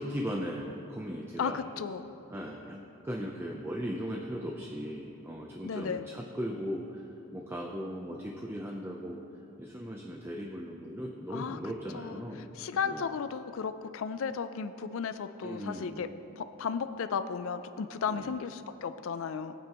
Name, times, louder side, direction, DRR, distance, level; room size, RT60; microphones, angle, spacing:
voice 1, 0.0-1.6 2.3-7.0 7.3-9.2 9.6-12.5 12.8-13.1 15.4-16.0 18.1-18.3, equal, 10° right, 0 dB, 0.6 m, -38 dB
voice 2, 1.4-2.1 5.6-6.0 11.3-11.6 11.9-12.2 12.6-16.1 16.4-19.5, left 6 dB, 65° left, 11 dB, 0.4 m, -34 dB
18.0 x 9.3 x 3.0 m, 2.9 s
head